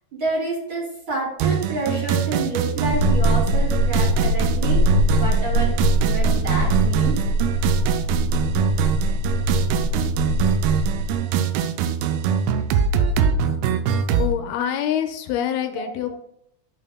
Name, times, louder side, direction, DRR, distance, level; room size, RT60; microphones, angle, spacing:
voice 1, 0.2-7.2 15.7-15.8, right 2 dB, 30° right, -5 dB, 3.5 m, -28 dB
sound 1, 1.4-14.3, right 7 dB, 80° right, 2.4 m, -23 dB
sound 2, 2.8-11.2, equal, 60° left, 2.1 m, -22 dB
voice 2, 14.2-16.2, left 10 dB, 85° left, 6 dB, 2.5 m, -25 dB
13.5 x 5.6 x 2.2 m, 0.74 s
omnidirectional pair, 4.6 m